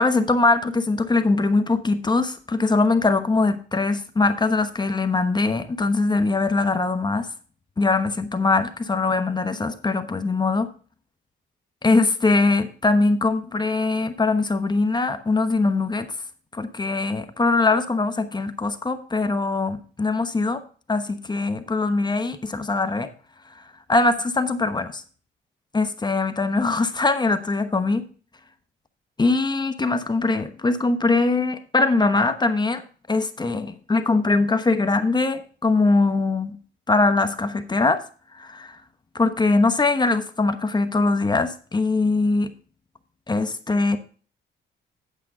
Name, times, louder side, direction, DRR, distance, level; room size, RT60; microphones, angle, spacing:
voice 1, 0.0-7.3 7.8-10.7 11.8-16.1 16.5-20.6 20.9-23.1 23.5-23.6 23.9-25.0 25.7-28.0 29.2-32.8 33.1-36.6 36.9-38.0 38.3-38.8 39.1-42.5 43.3-44.0, left 3 dB, 20° left, 9 dB, 1.0 m, -22 dB
8.9 x 8.5 x 3.7 m, 0.41 s
cardioid pair, 90°, 20 cm